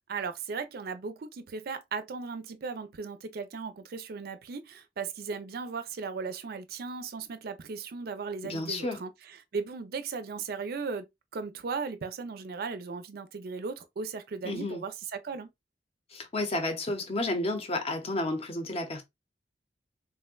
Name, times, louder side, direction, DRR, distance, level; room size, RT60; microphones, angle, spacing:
voice 1, 0.1-11.1 11.3-15.5, right 5 dB, 60° right, 0.4 m, -37 dB
voice 2, 8.4-9.0 14.4-14.8 16.1-19.0, left 2 dB, 35° left, 0.6 m, -31 dB
3.5 x 2.1 x 2.2 m
head